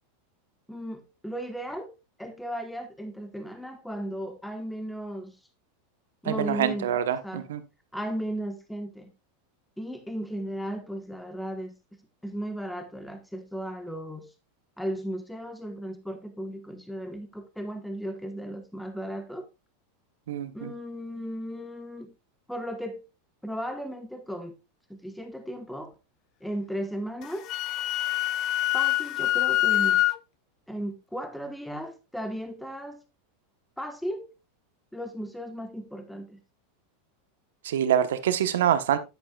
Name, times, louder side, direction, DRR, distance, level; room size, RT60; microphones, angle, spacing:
voice 1, 0.7-1.9 2.2-5.4 6.2-6.9 7.2-7.5 7.9-9.1 9.8-14.3 14.8-19.5 20.5-22.1 22.5-23.1 23.4-24.6 24.9-25.9 26.4-27.5 28.7-30.0 30.7-33.0 33.8-34.3 34.9-36.4, equal, 5° left, 1.2 m, -35 dB
voice 2, 6.2-7.6 20.3-20.7 37.6-39.0, right 10 dB, 80° right, 1.0 m, -25 dB
Wind instrument woodwind instrument, 27.2-30.2, left 15 dB, 45° left, 0.5 m, -25 dB
9.7 x 8.8 x 2.3 m
hypercardioid pair, 110°, 0 cm